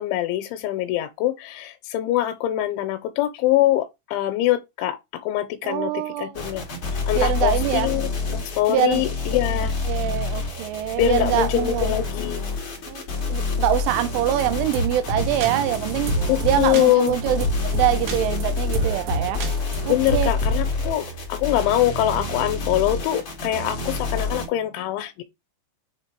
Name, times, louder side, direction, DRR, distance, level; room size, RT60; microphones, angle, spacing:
voice 1, 0.0-5.0 5.2-6.7 7.1-9.7 10.9-12.4 16.2-17.1 19.8-25.2, left 13 dB, 85° left, 3.1 m, -23 dB
voice 2, 5.6-6.4 7.2-7.9 8.7-9.0 9.9-12.0 12.9-13.0 13.3-17.4 17.7-19.4 19.9-20.3, right 12 dB, 90° right, 3.2 m, -24 dB
sound 1, 6.3-24.5, left 3 dB, 45° left, 1.9 m, -28 dB
sound 2, 14.4-20.7, right 2 dB, 65° right, 3.3 m, -28 dB
7.9 x 3.3 x 4.5 m
omnidirectional pair, 5.4 m